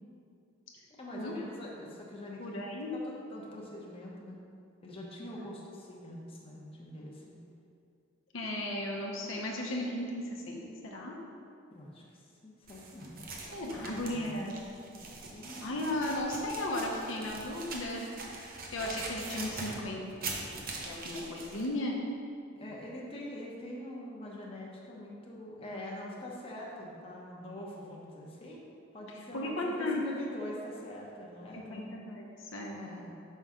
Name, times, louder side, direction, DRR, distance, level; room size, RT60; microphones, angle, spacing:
voice 1, 1.0-2.6 2.9-4.4 4.8-7.4 11.7-13.3 13.8-14.5 15.3-15.9 22.5-28.6 28.9-32.0 32.8-33.1, left 1 dB, 30° left, -3 dB, 0.8 m, -44 dB
voice 2, 2.4-3.0 8.3-11.1 13.5-14.6 15.6-18.0 18.7-20.0 20.8-22.0 29.3-30.0 31.5-32.8, left 1 dB, 75° left, -2 dB, 0.8 m, -35 dB
sound 1, 12.7-21.7, right 3 dB, 45° right, 0.7 m, -42 dB
5.5 x 5.5 x 3.7 m, 2.5 s
head